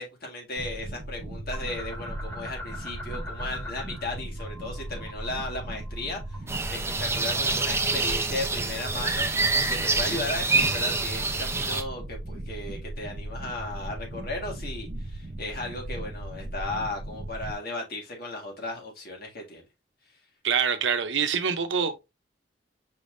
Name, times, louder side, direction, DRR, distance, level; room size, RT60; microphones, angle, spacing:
voice 1, 0.0-6.4 6.7-9.3 9.7-19.6, left 2 dB, 55° left, 1.9 m, -35 dB
sound 1, 0.6-17.5, right 1 dB, 45° right, 0.8 m, -37 dB
sound 2, 1.5-4.1 4.4-6.7, left 1 dB, 15° left, 1.5 m, -43 dB
sound 3, 6.5-11.8, right 3 dB, 15° right, 0.6 m, -26 dB
voice 2, 20.4-22.0, right 6 dB, 80° right, 0.7 m, -25 dB
5.6 x 3.5 x 2.6 m
head